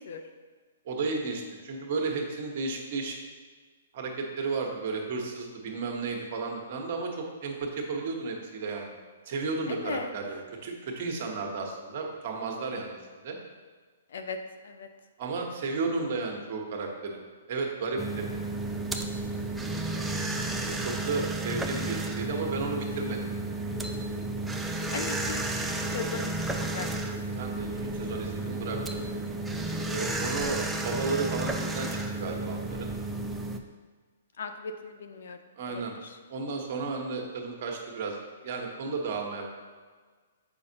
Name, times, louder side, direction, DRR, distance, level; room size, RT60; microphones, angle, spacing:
voice 1, 0.8-3.1 3.9-8.9 9.2-13.0 13.2-13.4 15.2-17.2 17.5-18.2 20.6-23.3 27.3-27.7 28.0-29.0 29.9-32.9 35.6-35.9 36.3-38.2 38.4-39.5, right 4 dB, 50° right, 1 dB, 1.1 m, -33 dB
sound 1, 18.0-33.6, right 2 dB, 5° right, 0.4 m, -32 dB
Telephone, 22.7-23.2 23.7-24.2 24.7-25.2 25.7-26.2 26.7-27.2 27.7-28.2 28.7-29.2 29.7-30.2 30.7-31.2, left 9 dB, 15° left, 0.8 m, -44 dB
voice 2, 24.9-25.4 25.9-26.9 34.4-35.4, left 5 dB, 70° left, 7 dB, 0.6 m, -37 dB
6.9 x 5.2 x 2.8 m, 1.5 s
hypercardioid pair, 135°, 0 cm